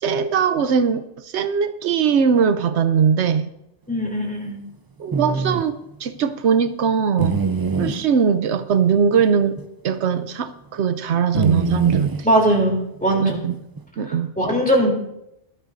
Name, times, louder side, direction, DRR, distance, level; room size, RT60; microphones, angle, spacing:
voice 1, 0.0-3.5 5.0-7.4 7.8-9.6 9.8-12.1 13.2-13.6 14.0-14.3, right 7 dB, 80° right, 10 dB, 1.0 m, -20 dB
voice 2, 3.9-4.6 7.8-8.0 12.2-13.4 14.1-14.9, right 1 dB, 5° left, -2 dB, 3.2 m, -20 dB
sound 1, 5.1-5.6 7.2-8.0 9.2-9.3 9.6-9.7 11.3-12.2 13.5-13.8, right 4 dB, 35° right, 0.3 m, -23 dB
20.0 x 12.5 x 2.6 m, 0.81 s
omnidirectional pair, 1.1 m